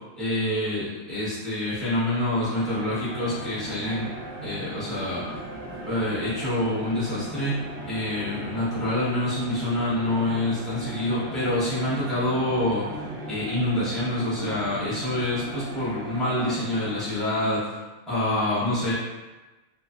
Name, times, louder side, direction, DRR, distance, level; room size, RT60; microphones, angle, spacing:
voice 1, 0.2-4.1 4.4-5.2 5.8-7.6 7.9-12.9 13.3-17.8 18.1-18.9, left 1 dB, ahead, -12 dB, 0.7 m, -26 dB
sound 1, 2.1-17.4, right 1 dB, 60° right, 0.7 m, -38 dB
2.5 x 2.0 x 2.4 m, 1.2 s
omnidirectional pair, 1.4 m